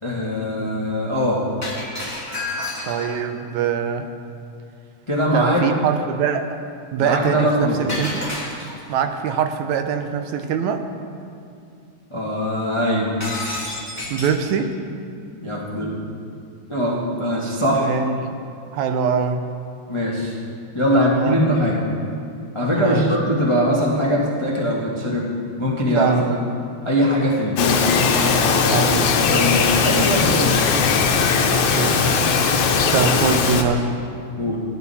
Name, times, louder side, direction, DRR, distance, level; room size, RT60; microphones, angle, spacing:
voice 1, 0.0-1.4 5.1-5.6 7.0-7.8 12.1-13.1 15.3-16.0 16.7-17.9 19.9-20.4 20.7-21.8 22.5-25.3 25.6-26.2 26.8-27.8 28.2-28.9 29.2-30.8 34.4-34.6, equal, 50° left, -4 dB, 0.3 m, -21 dB
Shatter, 1.6-3.3 7.9-8.9 13.2-14.5, left 2 dB, 5° left, 1.9 m, -30 dB
voice 2, 2.8-4.1 5.3-6.6 6.9-8.3 8.9-10.8 14.1-14.7 17.7-18.2 18.7-19.5 20.9-21.4 22.7-23.1 25.9-26.4 28.7-29.1 31.5-32.0 32.9-33.9, right 7 dB, 80° right, 7 dB, 2.0 m, -23 dB
Bird vocalization bird call bird song, 27.6-33.6, left 5 dB, 80° left, 2.2 m, -19 dB
15.0 x 11.0 x 4.2 m, 2.5 s
omnidirectional pair, 3.4 m